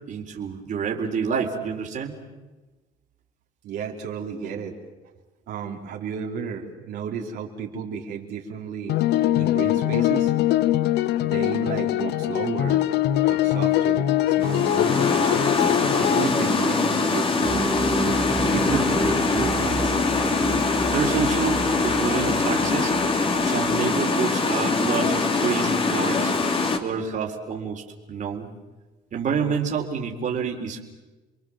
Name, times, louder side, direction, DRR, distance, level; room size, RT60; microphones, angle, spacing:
voice 1, 0.1-2.1 20.9-22.9 23.4-26.3 26.8-28.5 29.1-30.8, right 6 dB, 50° right, 1 dB, 3.8 m, -28 dB
voice 2, 3.6-4.8 5.5-8.9 9.4-10.3 11.2-12.8 13.3-15.1 16.0-20.0, right 7 dB, 75° right, -1 dB, 4.0 m, -33 dB
sound 1, 8.9-16.3, left 13 dB, 80° left, 0.9 m, -22 dB
sound 2, 14.4-26.8, left 3 dB, 30° left, 2.9 m, -23 dB
sound 3, 17.4-23.8, right 2 dB, 5° right, 1.7 m, -32 dB
30.0 x 23.0 x 7.5 m, 1.2 s
cardioid pair, 110°, 17 cm